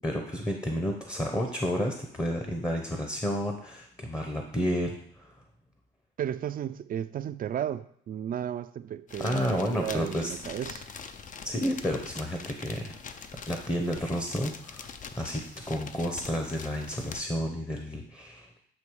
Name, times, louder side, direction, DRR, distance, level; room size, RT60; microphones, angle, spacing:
voice 1, 0.0-5.3 9.2-10.3 11.4-15.4 15.7-18.6, equal, 15° left, 3 dB, 0.8 m, -31 dB
voice 2, 6.2-10.9, right 10 dB, 45° right, 13 dB, 0.4 m, -34 dB
sound 1, 9.1-17.2, left 6 dB, 40° left, 0.5 m, -43 dB
8.3 x 2.8 x 4.7 m, 0.65 s
cardioid pair, 90°, 20 cm